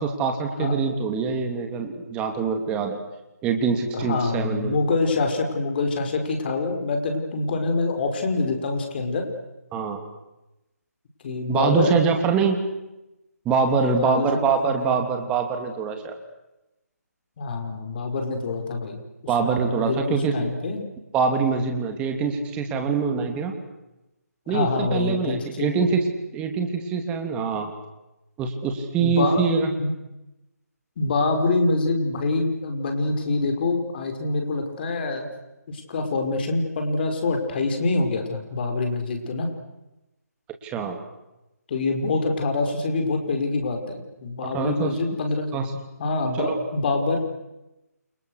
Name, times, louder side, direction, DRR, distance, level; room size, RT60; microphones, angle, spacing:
voice 1, 0.0-3.0 3.4-4.8 9.7-10.0 11.5-12.6 13.4-16.2 19.3-20.3 21.1-23.6 24.5-26.0 26.3-27.7 28.4-29.7 40.6-41.0 44.5-44.9 45.5-45.7 46.4-46.5, right 5 dB, 10° right, 5 dB, 3.0 m, -24 dB
voice 2, 3.9-9.3 11.2-11.9 13.7-15.0 17.4-19.0 19.2-20.9 24.5-25.8 29.0-29.5 29.8-29.9 31.0-35.3 35.7-39.5 41.7-45.5 46.0-47.2, left 3 dB, 35° left, 4 dB, 5.4 m, -25 dB
29.5 x 29.0 x 6.6 m, 0.95 s
figure-of-eight pair, 160°, 9 cm